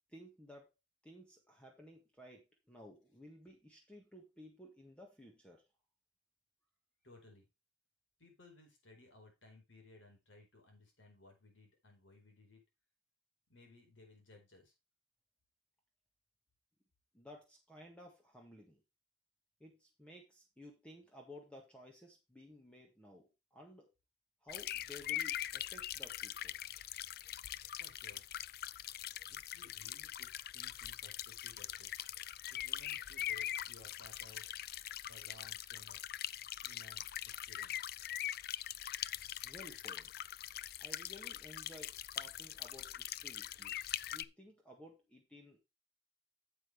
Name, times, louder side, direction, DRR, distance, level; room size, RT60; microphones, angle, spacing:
voice 1, 0.1-0.7 1.0-5.6 17.1-18.8 19.6-23.9 24.4-26.6 39.4-40.1 40.8-43.8 44.1-45.6, left 1 dB, 5° left, 1 dB, 1.8 m, -56 dB
voice 2, 7.0-7.5 8.2-12.6 13.5-14.7 27.8-28.2 29.3-31.9 32.5-34.5 35.1-36.0 36.6-37.9, left 2 dB, 85° left, 3 dB, 4.6 m, -60 dB
sound 1, 24.5-44.2, left 12 dB, 55° left, 0.4 m, -42 dB
9.0 x 7.8 x 3.4 m, 0.25 s
head